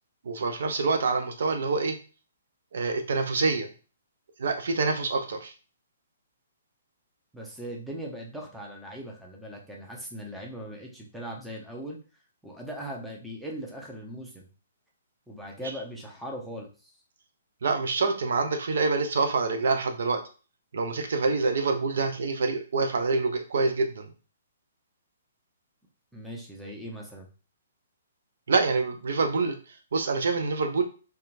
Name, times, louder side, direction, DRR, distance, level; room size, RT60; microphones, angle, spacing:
voice 1, 0.3-2.0 2.7-3.7 4.4-5.5 15.6-15.7 17.6-20.2 20.7-24.1 28.5-29.6 29.9-30.8, right 4 dB, 60° right, 5 dB, 0.4 m, -26 dB
voice 2, 7.3-12.0 12.4-14.5 15.3-16.9 26.1-27.3, equal, ahead, -1 dB, 0.6 m, -39 dB
2.8 x 2.3 x 2.5 m, 0.35 s
figure-of-eight pair, 125°, 0 cm